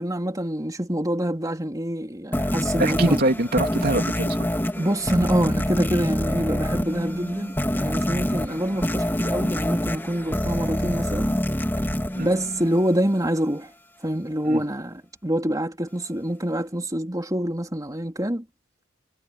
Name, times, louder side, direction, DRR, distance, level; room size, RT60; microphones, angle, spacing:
voice 1, 0.0-3.2 4.8-11.3 12.2-13.7 14.0-18.4, right 1 dB, 20° right, 3.5 m, -26 dB
sound 1, 2.3-13.1, equal, 10° left, 2.9 m, -26 dB
voice 2, 2.8-4.5 12.1-12.3 14.5-14.6, right 1 dB, 50° right, 3.3 m, -24 dB
head